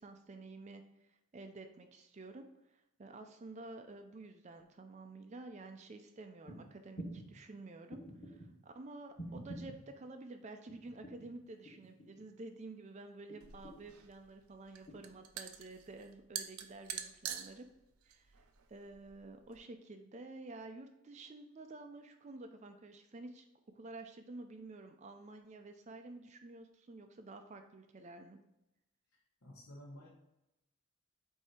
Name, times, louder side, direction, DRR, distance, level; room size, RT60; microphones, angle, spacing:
voice 1, 0.0-8.0 8.2-17.7 18.1-18.4 18.7-23.5 23.7-28.4, right 2 dB, 30° right, 6 dB, 0.4 m, -51 dB
sound 1, 6.5-6.6 7.0-7.3 7.9-8.5 9.2-9.8 10.7-11.3 11.6-12.3 13.3-13.9 14.9-15.0, right 1 dB, 25° left, 1.6 m, -47 dB
sound 2, 13.4-19.6, right 9 dB, 85° right, 0.6 m, -46 dB
voice 2, 29.4-30.1, left 1 dB, 75° left, -5 dB, 1.1 m, -51 dB
8.1 x 2.8 x 4.3 m, 0.91 s
head